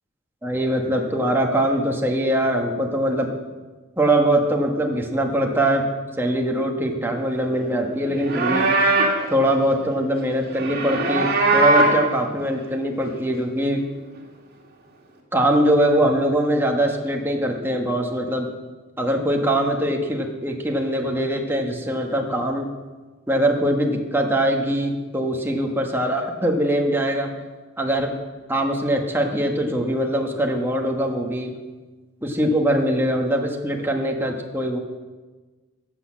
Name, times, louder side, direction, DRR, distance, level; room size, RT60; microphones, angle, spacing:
voice 1, 0.4-3.4 4.0-5.9 6.2-8.7 9.3-13.8 15.3-18.5 19.0-22.7 23.3-27.3 27.8-28.1 28.5-31.5 32.2-34.8, right 1 dB, 10° right, 1 dB, 1.4 m, -22 dB
Livestock farm animals working animals, 8.1-9.2 10.5-12.1, right 2 dB, 50° right, 2.3 m, -20 dB
12.5 x 8.4 x 7.6 m, 1.3 s
head